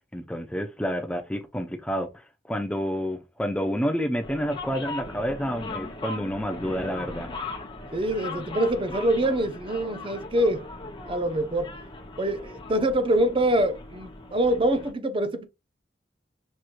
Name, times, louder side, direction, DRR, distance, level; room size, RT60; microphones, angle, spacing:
voice 1, 0.1-7.3, equal, 5° left, 0.5 m, -29 dB
sound 1, 4.2-14.9, left 2 dB, 30° left, 0.9 m, -39 dB
voice 2, 7.9-10.6 11.1-11.7 12.2-15.5, right 1 dB, 30° right, 0.7 m, -25 dB
6.2 x 3.0 x 2.5 m
head